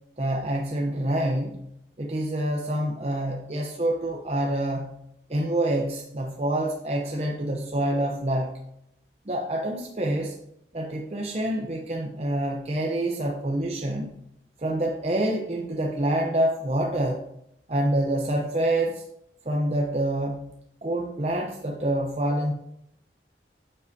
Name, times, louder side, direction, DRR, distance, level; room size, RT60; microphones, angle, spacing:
voice 1, 0.2-1.6 2.0-5.0 5.3-8.6 9.3-10.4 10.7-14.2 14.6-17.2 17.7-19.0 19.4-20.5 20.8-22.5, right 1 dB, 35° right, 0 dB, 0.7 m, -27 dB
9.4 x 7.6 x 2.7 m, 0.78 s
head